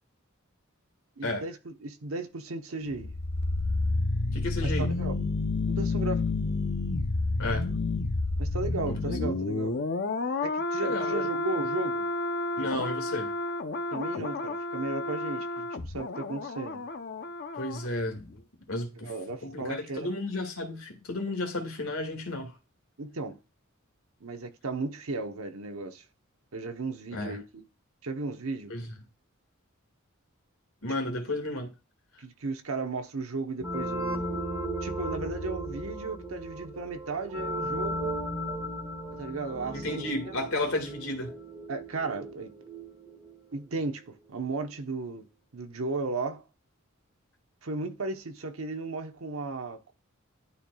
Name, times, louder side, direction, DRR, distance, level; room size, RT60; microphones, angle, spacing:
voice 1, 1.2-3.1 4.6-5.2 5.7-6.2 8.4-9.7 10.4-12.1 13.9-16.9 19.0-20.1 23.0-23.4 24.2-26.0 26.5-27.7 28.0-28.7 32.2-34.5 34.8-38.2 39.2-40.3 41.7-42.5 43.5-45.2 45.5-46.4 47.6-49.9, right 3 dB, 80° right, 1.0 m, -35 dB
sound 1, 2.9-17.9 18.1-18.3, left 3 dB, 50° left, 0.7 m, -30 dB
voice 2, 4.3-4.9 7.4-7.7 8.9-9.0 10.8-11.3 12.6-13.3 17.5-18.3 18.7-19.1 19.4-22.5 27.1-27.4 28.7-28.9 30.8-31.7 39.7-41.3, left 2 dB, 80° left, 2.0 m, -32 dB
sound 2, 33.6-44.0, right 1 dB, 10° right, 1.3 m, -36 dB
11.5 x 4.4 x 2.3 m
head